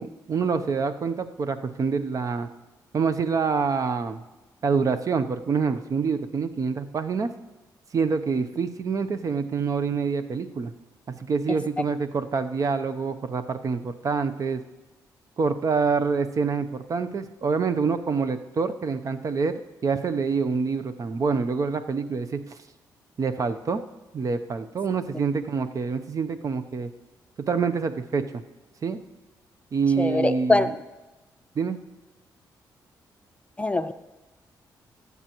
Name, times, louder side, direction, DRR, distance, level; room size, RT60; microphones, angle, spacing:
voice 1, 0.0-2.5 2.9-4.2 4.6-7.3 7.9-10.7 11.1-14.6 15.4-22.4 23.2-23.8 24.1-26.9 27.4-28.4 28.8-29.0 29.7-30.7 31.6-31.8, right 5 dB, 50° right, 10 dB, 0.7 m, -26 dB
voice 2, 30.0-30.7 33.6-33.9, left 2 dB, 15° left, 10 dB, 0.5 m, -22 dB
17.0 x 8.2 x 3.0 m, 1.1 s
cardioid pair, 75°, 8 cm